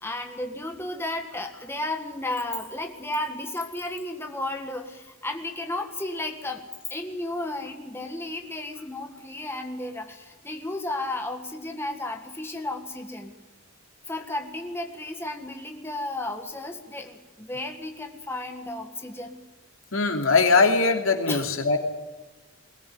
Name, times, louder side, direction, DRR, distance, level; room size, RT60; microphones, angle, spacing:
voice 1, 0.0-6.6 6.9-13.4 14.1-19.4 21.3-21.5, left 2 dB, 10° left, 4 dB, 1.7 m, -33 dB
voice 2, 19.9-21.8, left 4 dB, 75° left, 3 dB, 2.9 m, -21 dB
21.5 x 18.0 x 9.5 m, 1.2 s
head